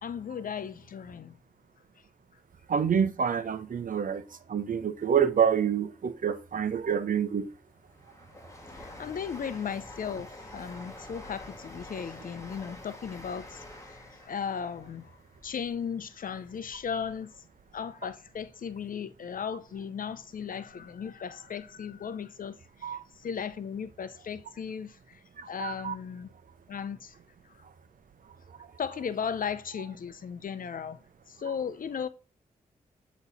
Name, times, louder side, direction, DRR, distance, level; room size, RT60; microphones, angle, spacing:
voice 1, 0.0-1.3 8.7-15.1 15.4-17.3 17.7-25.2 25.5-26.3 26.7-27.1 28.8-31.0 31.3-32.1, left 7 dB, 60° left, 0.7 m, -36 dB
voice 2, 2.7-4.2 4.5-7.5 22.8-23.0 25.4-25.9, right 7 dB, 60° right, 0.8 m, -27 dB
Train, 7.3-17.1 17.5-18.5 18.7-18.8, left 1 dB, 20° left, 2.0 m, -48 dB
8.1 x 3.1 x 4.1 m
supercardioid pair, 40°, 16 cm